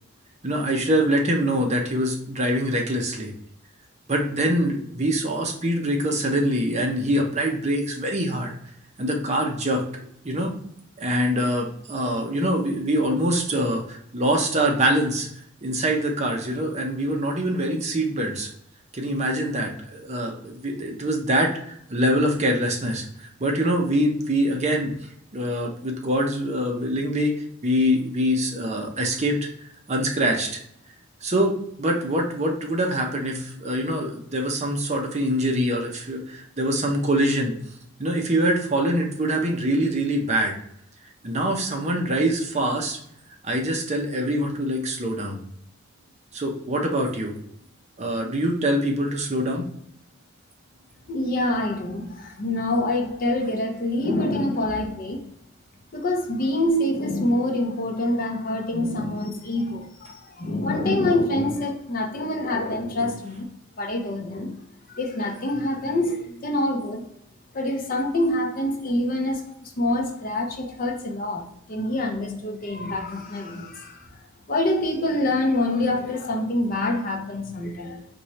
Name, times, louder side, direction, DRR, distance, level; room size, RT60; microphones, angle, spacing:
voice 1, 0.4-3.3 4.1-8.5 9.0-9.8 10.2-10.6 11.0-15.3 15.6-18.5 18.9-24.9 25.3-27.3 27.6-29.5 29.9-30.6 31.2-37.5 38.0-40.6 41.2-43.0 43.4-45.4 46.3-47.3 48.0-49.6, right 1 dB, 35° right, 0.8 m, -24 dB
voice 2, 51.1-55.2 55.9-63.5 63.8-64.6 64.9-67.1 67.5-74.1 74.5-78.1, left 1 dB, 45° left, 0.8 m, -26 dB
4.3 x 3.2 x 3.1 m
head